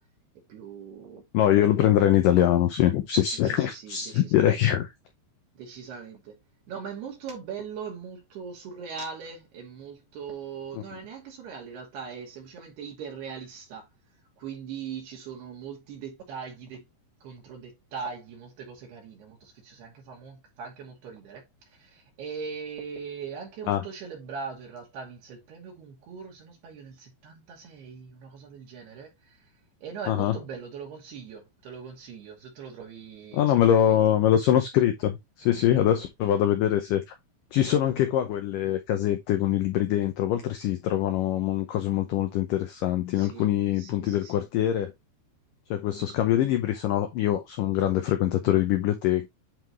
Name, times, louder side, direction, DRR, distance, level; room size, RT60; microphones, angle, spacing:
voice 1, 0.4-1.3 3.2-4.6 5.5-6.4 6.7-13.9 14.4-16.9 17.2-21.4 21.7-29.5 29.8-34.0 35.7-35.8 43.2-43.5 43.8-44.4, right 6 dB, 70° right, 4.6 m, -40 dB
voice 2, 1.3-4.9 23.7-23.8 30.1-30.4 33.3-37.2 37.5-44.9 45.7-49.3, left 11 dB, 85° left, 1.9 m, -23 dB
10.5 x 3.9 x 3.0 m
omnidirectional pair, 4.9 m